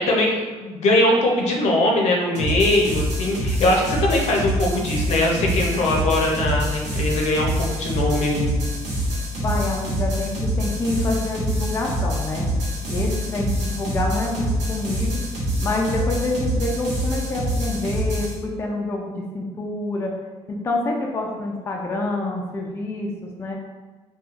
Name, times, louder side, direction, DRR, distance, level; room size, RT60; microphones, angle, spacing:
voice 1, 0.0-8.5, left 1 dB, 70° left, -1 dB, 0.6 m, -21 dB
sound 1, 2.3-18.3, equal, 85° right, 0.8 m, -25 dB
voice 2, 9.4-12.5 12.9-15.2 15.6-20.1 20.5-23.1 23.4-23.6, left 2 dB, 20° left, -1 dB, 0.3 m, -27 dB
2.9 x 2.3 x 2.4 m, 1.3 s
cardioid pair, 120°, 12 cm